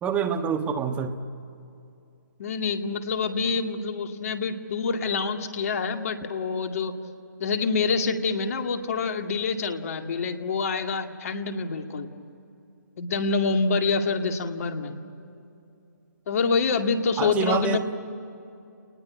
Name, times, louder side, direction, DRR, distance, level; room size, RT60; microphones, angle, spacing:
voice 1, 0.0-1.1 17.2-17.8, right 6 dB, 15° right, 8 dB, 1.3 m, -26 dB
voice 2, 2.4-6.9 7.4-12.1 13.0-14.9 16.3-17.8, left 4 dB, 50° left, 6 dB, 2.2 m, -26 dB
30.0 x 20.5 x 9.6 m, 2.6 s
hypercardioid pair, 145°, 10 cm